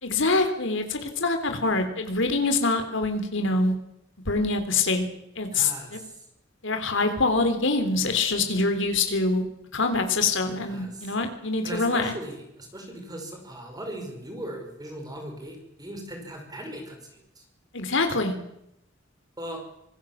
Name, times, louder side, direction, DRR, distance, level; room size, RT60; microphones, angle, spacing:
voice 1, 0.0-3.7 4.3-5.0 5.4-6.0 6.6-9.5 9.7-12.1 17.7-18.3, left 3 dB, 70° left, 6 dB, 3.6 m, -25 dB
voice 2, 5.5-6.2 10.6-11.1 11.6-17.4 19.4-19.6, right 1 dB, 20° right, 3 dB, 5.5 m, -38 dB
25.5 x 20.0 x 7.5 m, 0.80 s
head